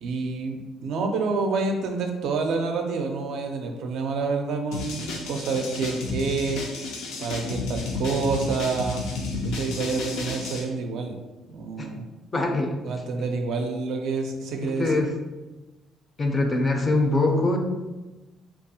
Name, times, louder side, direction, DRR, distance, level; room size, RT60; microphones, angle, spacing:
voice 1, 0.0-6.6 7.2-9.1 9.4-11.2 11.5-12.0 12.8-15.0, right 4 dB, 70° right, 3 dB, 0.4 m, -28 dB
sound 1, 4.7-10.6, left 3 dB, 85° left, 0.5 m, -32 dB
voice 2, 12.3-12.7 14.6-15.1 16.2-17.6, left 2 dB, 25° left, 3 dB, 0.4 m, -23 dB
2.7 x 2.3 x 2.7 m, 1.1 s
cardioid pair, 115°, 0 cm